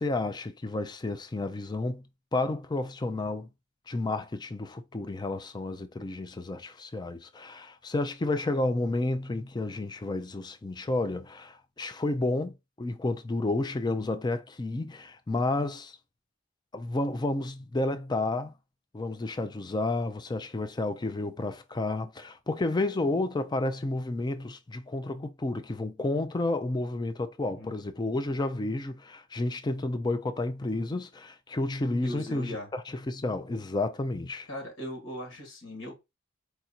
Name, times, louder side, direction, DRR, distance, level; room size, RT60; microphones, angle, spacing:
voice 1, 0.0-2.0 2.3-3.5 3.9-16.0 16.7-18.5 18.9-34.5, left 2 dB, 20° left, 0.4 m, -31 dB
voice 2, 27.4-27.7 32.0-32.7 34.5-36.0, left 1 dB, 85° left, 2.2 m, -39 dB
4.7 x 2.6 x 4.3 m
head